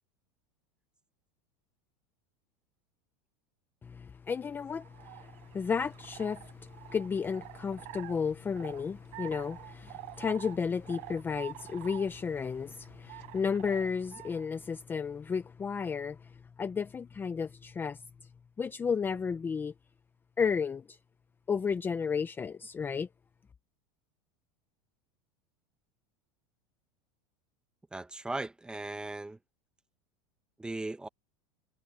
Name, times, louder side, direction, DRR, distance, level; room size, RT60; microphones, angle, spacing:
voice 1, 3.8-16.3 16.6-18.0 18.6-19.7 20.4-21.0 21.5-23.1, left 6 dB, 15° left, 0.7 m, -33 dB
sound 1, 4.8-14.5, right 25 dB, 50° right, 6.7 m, -48 dB
voice 2, 27.9-29.4 30.6-31.1, right 2 dB, 5° right, 1.0 m, -37 dB
supercardioid pair, 145°, 14 cm